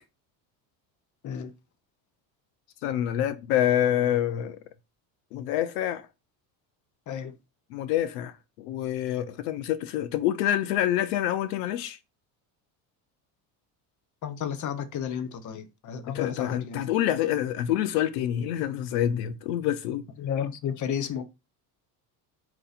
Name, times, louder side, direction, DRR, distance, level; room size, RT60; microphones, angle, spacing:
voice 1, 2.8-4.6 5.3-6.1 7.7-12.0 16.1-20.0, left 11 dB, 90° left, 0.6 m, -27 dB
voice 2, 14.2-16.8 20.2-21.2, left 8 dB, 40° left, 0.8 m, -32 dB
4.5 x 2.9 x 4.0 m
supercardioid pair, 85°, 45 cm